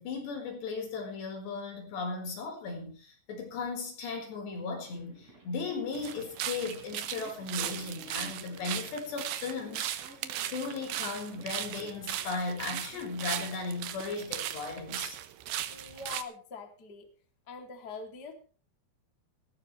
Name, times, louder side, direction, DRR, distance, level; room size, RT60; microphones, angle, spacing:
voice 1, 0.0-10.0 10.4-15.2, left 4 dB, 75° left, 3 dB, 6.6 m, -36 dB
sound 1, 4.8-14.3, right 2 dB, 35° right, 6.4 m, -54 dB
sound 2, 5.9-16.2, right 12 dB, 75° right, 2.9 m, -37 dB
voice 2, 15.7-17.1 17.5-18.3, left 4 dB, 25° left, 4 dB, 2.7 m, -43 dB
18.0 x 15.0 x 3.3 m, 0.39 s
omnidirectional pair, 5.0 m